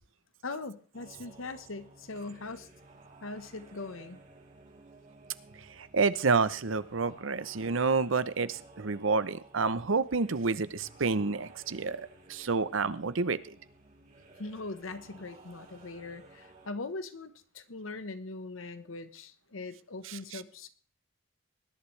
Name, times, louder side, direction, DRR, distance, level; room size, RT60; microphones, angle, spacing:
voice 1, 0.4-2.7 3.2-4.2 14.4-20.7, left 3 dB, 90° left, 12 dB, 1.2 m, -41 dB
sound 1, 0.9-16.7, right 3 dB, 40° right, 2.5 m, -55 dB
voice 2, 5.8-13.5 20.1-20.4, right 4 dB, 80° right, 15 dB, 0.8 m, -29 dB
20.0 x 11.5 x 3.3 m, 0.43 s
head